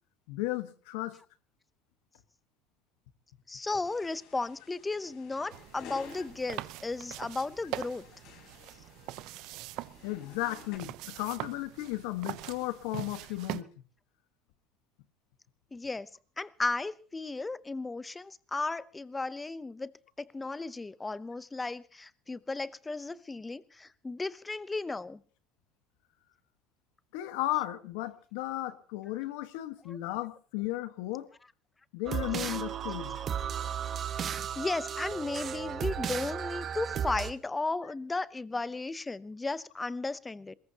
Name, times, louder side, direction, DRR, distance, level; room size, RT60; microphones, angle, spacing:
voice 1, 0.3-1.2 10.0-13.7 27.1-31.3 31.9-33.2, left 16 dB, 85° left, 1.4 m, -35 dB
voice 2, 3.5-8.0 15.7-16.1 16.4-19.9 20.2-25.2 29.9-30.0 32.4-32.5 33.2-33.3 34.6-40.5, left 3 dB, 10° left, 0.7 m, -35 dB
sound 1, 3.8-10.8, left 8 dB, 60° left, 3.9 m, -53 dB
sound 2, 5.5-13.6, right 16 dB, 65° right, 0.8 m, -42 dB
sound 3, 32.1-37.3, right 8 dB, 35° right, 1.2 m, -34 dB
22.5 x 20.5 x 2.9 m
cardioid pair, 145°, 0 cm